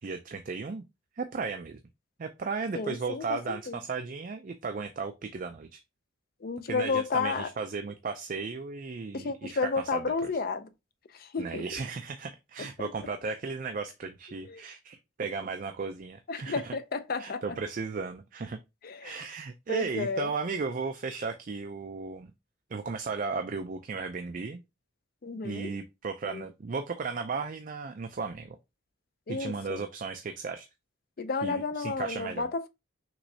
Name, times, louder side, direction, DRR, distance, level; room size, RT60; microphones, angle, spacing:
voice 1, 0.0-0.8 1.2-1.8 2.2-5.8 6.7-10.3 11.4-16.8 17.2-18.6 19.0-22.3 22.7-24.6 25.4-28.6 29.3-30.7 31.4-32.5, right 4 dB, 40° right, 0.4 m, -35 dB
voice 2, 2.7-3.8 6.4-7.5 9.1-10.7 11.2-11.6 12.8-12.9 14.5-14.6 16.3-17.4 18.8-19.2 19.7-20.3 25.2-25.7 26.3-26.4 29.3-29.8 31.2-32.7, left 4 dB, 45° left, 0.4 m, -32 dB
6.0 x 3.1 x 2.7 m
head